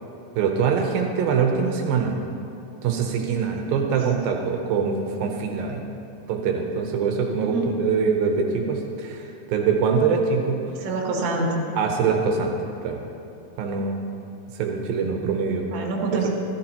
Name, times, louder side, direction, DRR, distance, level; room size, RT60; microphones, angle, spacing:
voice 1, 0.4-2.1 2.8-5.8 6.3-10.6 11.8-12.5 12.8-13.0 13.6-14.0 14.5-15.7, right 6 dB, 75° right, 2 dB, 2.5 m, -23 dB
voice 2, 10.8-11.7 15.7-16.4, right 2 dB, 45° right, -3 dB, 1.5 m, -26 dB
14.5 x 13.5 x 2.9 m, 2.6 s
omnidirectional pair, 4.3 m